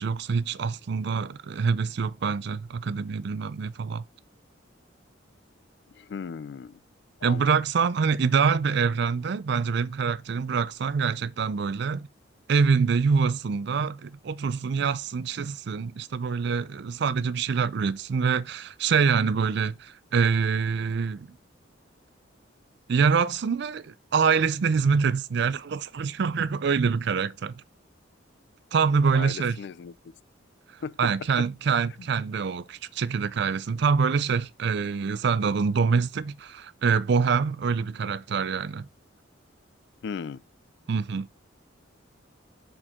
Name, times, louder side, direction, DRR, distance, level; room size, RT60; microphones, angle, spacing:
voice 1, 0.0-4.0 7.2-12.1 12.5-21.3 22.9-27.5 28.7-29.6 31.0-38.9 40.9-41.3, right 5 dB, 60° right, 0.4 m, -25 dB
voice 2, 5.9-6.8 7.2-7.5 29.1-30.1 30.8-31.5 32.0-32.1 40.0-40.4, left 6 dB, 60° left, 0.3 m, -37 dB
6.5 x 4.5 x 3.6 m
head